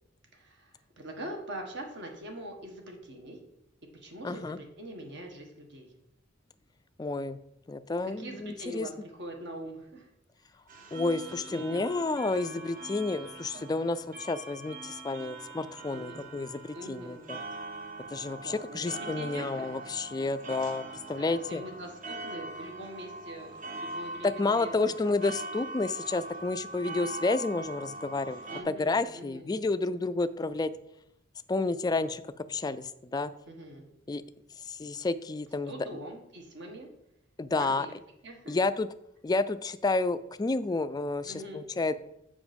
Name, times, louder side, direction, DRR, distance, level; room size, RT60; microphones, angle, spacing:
voice 1, 0.3-3.4 3.9-5.9 8.0-10.1 11.5-12.0 15.9-16.2 16.7-17.3 18.4-19.9 20.5-20.6 21.2-24.9 28.5-29.6 33.5-33.9 35.7-36.9 37.6-37.9 38.2-38.6 41.2-41.6, right 1 dB, 60° right, 2 dB, 1.5 m, -43 dB
voice 2, 4.2-4.6 7.0-7.4 7.7-8.9 10.9-17.4 18.1-21.6 24.2-28.4 28.7-30.7 31.5-32.2 32.5-33.3 34.1-34.2 34.6-35.7 37.4-37.9 38.5-38.9 39.2-41.9, left 3 dB, 20° left, 12 dB, 0.3 m, -30 dB
sound 1, 10.7-28.6, right 2 dB, 45° right, 1.0 m, -42 dB
7.1 x 5.3 x 5.2 m, 0.81 s
head